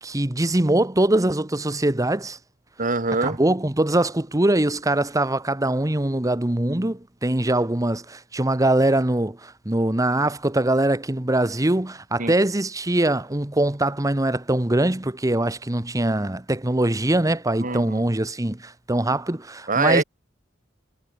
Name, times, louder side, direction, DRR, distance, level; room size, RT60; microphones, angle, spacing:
voice 1, 0.0-2.4 3.2-20.0, right 1 dB, 20° right, 1.1 m, -22 dB
voice 2, 2.8-3.4 12.2-12.3 17.6-18.0 19.7-20.0, right 3 dB, 45° right, 3.0 m, -23 dB
head